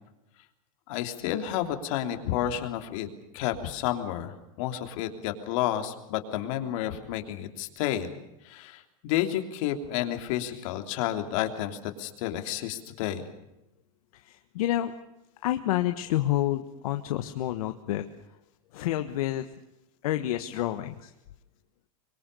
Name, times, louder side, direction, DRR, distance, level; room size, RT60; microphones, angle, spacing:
voice 1, 0.9-3.1 3.3-8.1 8.4-13.2, left 12 dB, 60° left, 6 dB, 3.3 m, -31 dB
voice 2, 14.1-14.9 15.4-18.0 18.7-19.5 20.0-21.1, left 13 dB, 75° left, 8 dB, 1.4 m, -29 dB
24.5 x 23.0 x 6.9 m, 0.91 s
supercardioid pair, 145°, 18 cm